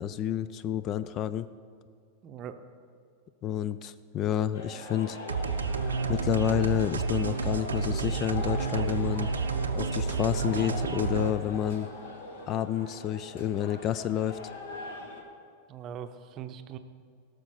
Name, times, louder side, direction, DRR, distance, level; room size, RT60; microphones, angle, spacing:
voice 1, 0.0-1.5 3.4-5.2 6.1-9.3 9.7-11.9 12.5-14.4, left 10 dB, 35° left, 15 dB, 0.3 m, -29 dB
voice 2, 2.2-2.6 15.7-16.8, right 9 dB, 35° right, 9 dB, 0.7 m, -41 dB
sound 1, 4.5-15.2, left 2 dB, 60° left, 1.4 m, -41 dB
sound 2, 5.3-11.3, right 4 dB, 70° right, 0.5 m, -30 dB
17.0 x 6.5 x 4.4 m, 2.2 s
figure-of-eight pair, 90°, 0 cm